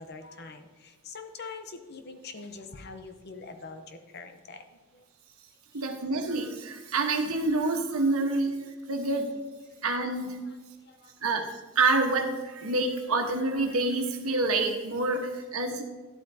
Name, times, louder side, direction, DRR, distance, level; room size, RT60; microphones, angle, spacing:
voice 1, 0.0-4.7 4.9-5.0 5.7-5.9 10.4-11.1, left 4 dB, 50° left, 7 dB, 0.8 m, -44 dB
voice 2, 5.7-8.6 8.9-9.3 9.8-10.4 11.2-11.5 11.7-15.8, right 3 dB, 85° right, 3 dB, 1.3 m, -27 dB
12.0 x 8.2 x 2.8 m, 1.4 s
head